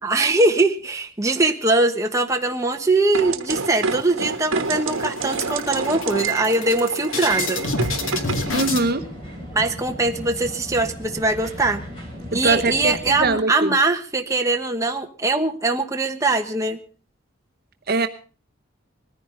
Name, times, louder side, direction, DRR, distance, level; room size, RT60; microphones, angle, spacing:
voice 1, 0.0-7.6 9.5-11.8 12.3-16.8, right 2 dB, 15° right, 3 dB, 1.2 m, -21 dB
sound 1, 3.1-8.7, right 4 dB, 80° right, 1.3 m, -28 dB
sound 2, 3.5-4.3 4.6-4.8 5.1-8.8, left 3 dB, 75° left, 2.4 m, -29 dB
sound 3, 8.0-13.3, equal, 25° left, 5.2 m, -36 dB
voice 2, 8.5-9.0 12.3-13.7 17.9-18.1, right 3 dB, 50° right, 7 dB, 0.9 m, -22 dB
20.5 x 14.5 x 3.9 m, 0.37 s
head